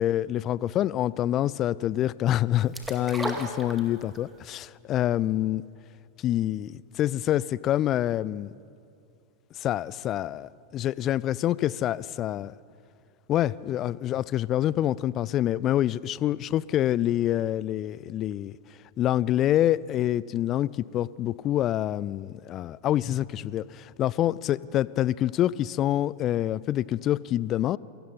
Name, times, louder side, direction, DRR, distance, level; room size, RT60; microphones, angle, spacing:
voice 1, 0.0-5.6 6.2-8.5 9.6-12.5 13.3-18.5 19.0-27.8, left 12 dB, 30° left, 21 dB, 0.4 m, -26 dB
sound 1, 2.7-4.3 4.6-4.7, right 2 dB, 10° right, 2.1 m, -34 dB
27.5 x 17.5 x 5.6 m, 2.5 s
figure-of-eight pair, 90°, 0 cm